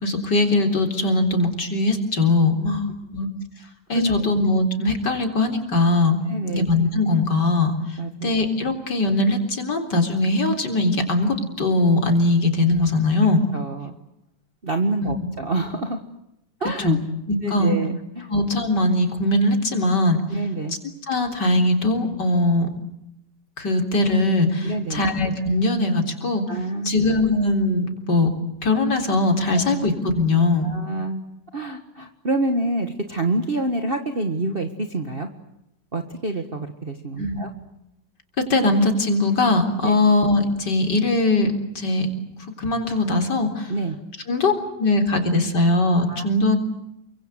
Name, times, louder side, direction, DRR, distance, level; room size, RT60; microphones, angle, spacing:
voice 1, 0.0-3.3 3.9-6.2 6.5-7.7 8.2-13.4 15.0-15.3 16.8-17.0 17.3-17.8 18.3-20.2 21.1-22.7 23.6-26.5 26.8-28.3 28.6-30.7 37.2-37.4 38.4-42.1 42.6-43.7 44.3-46.6, left 2 dB, 65° left, 5 dB, 4.5 m, -21 dB
voice 2, 3.9-4.3 6.3-6.6 8.0-8.3 13.5-13.9 14.6-16.0 16.6-17.0 17.4-18.3 20.3-20.8 24.6-25.1 26.5-27.0 29.5-29.6 30.6-31.2 31.5-35.3 35.9-37.5 39.8-39.9 43.7-44.0 46.1-46.3, right 2 dB, 30° right, 5 dB, 1.8 m, -27 dB
29.0 x 24.5 x 8.2 m, 0.82 s
omnidirectional pair, 2.0 m